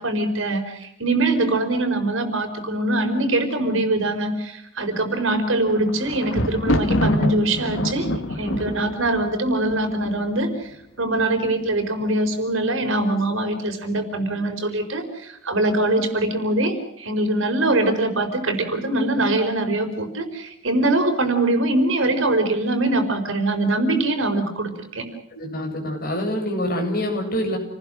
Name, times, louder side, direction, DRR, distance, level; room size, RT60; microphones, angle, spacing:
voice 1, 0.0-8.1 8.4-10.7 11.0-25.1, right 2 dB, 65° right, 7 dB, 4.6 m, -23 dB
Thunder, 5.3-10.5 11.2-11.7 12.0-12.1, equal, 70° left, 2.2 m, -26 dB
voice 2, 8.4-8.7 25.3-27.6, equal, 45° left, 2 dB, 7.7 m, -26 dB
29.5 x 19.5 x 6.4 m, 0.80 s
head